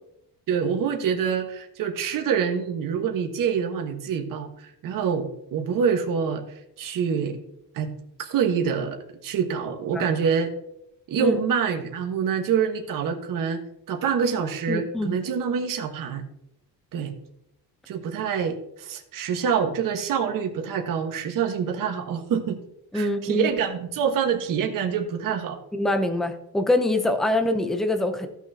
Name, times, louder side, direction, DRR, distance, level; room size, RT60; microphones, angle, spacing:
voice 1, 0.5-6.4 6.8-7.4 7.7-7.9 8.2-9.0 9.2-10.5 11.1-13.6 13.9-16.2 16.9-17.1 17.9-22.6 22.9-25.6, right 7 dB, 50° right, 3 dB, 1.4 m, -26 dB
voice 2, 14.7-15.1 22.9-23.5 25.7-28.3, left 1 dB, ahead, 7 dB, 0.6 m, -24 dB
15.5 x 6.2 x 2.8 m, 0.78 s
cardioid pair, 160°, 41 cm